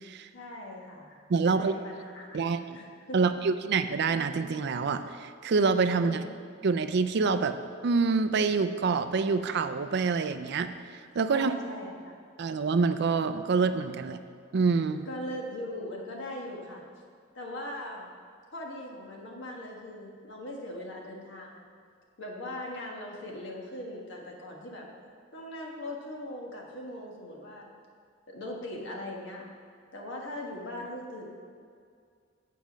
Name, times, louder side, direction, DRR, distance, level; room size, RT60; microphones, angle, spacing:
voice 1, 0.3-2.4 2.7-3.2 6.0-6.3 11.3-12.1 15.0-16.8 17.3-18.1 18.5-21.6 22.2-24.9 25.3-27.7 28.3-29.4 29.9-31.3, left 1 dB, 65° left, -1 dB, 1.5 m, -40 dB
voice 2, 1.3-1.7 2.3-2.8 3.1-6.2 6.6-7.6 7.8-11.5 12.4-14.2 14.5-15.1, right 4 dB, 55° right, 10 dB, 0.4 m, -26 dB
7.5 x 5.0 x 7.2 m, 2.2 s
head